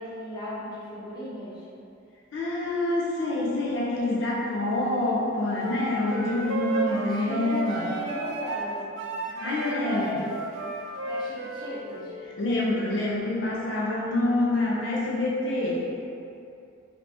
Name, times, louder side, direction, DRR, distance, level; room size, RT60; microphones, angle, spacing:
voice 1, 0.0-1.7 6.8-8.9 9.4-10.3 11.0-12.1, left 1 dB, 20° left, -9 dB, 0.7 m, -36 dB
voice 2, 2.3-7.9 9.2-10.1 12.4-15.9, left 2 dB, 65° left, -5 dB, 0.5 m, -26 dB
sound 1, 5.6-12.1, right 4 dB, 65° right, 0.3 m, -33 dB
3.3 x 2.8 x 2.6 m, 2.6 s
head